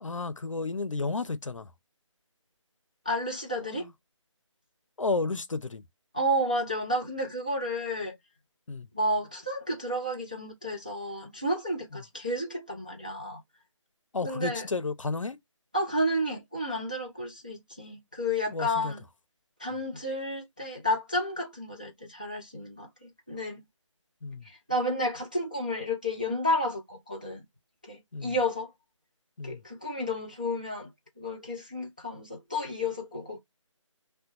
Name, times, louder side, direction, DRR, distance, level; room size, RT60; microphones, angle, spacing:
voice 1, 0.0-1.7 3.7-3.9 5.0-5.8 8.7-8.9 14.1-15.4 18.5-18.9 24.2-24.5 28.1-28.4 29.4-29.6, left 3 dB, 75° left, 0.5 m, -32 dB
voice 2, 3.1-3.9 6.1-8.2 8.9-13.4 14.2-14.7 15.7-19.0 19.6-23.6 24.5-27.4 27.8-28.7 29.4-30.9 31.2-33.4, equal, 15° right, 0.3 m, -31 dB
2.8 x 2.1 x 2.6 m
figure-of-eight pair, 160°, 16 cm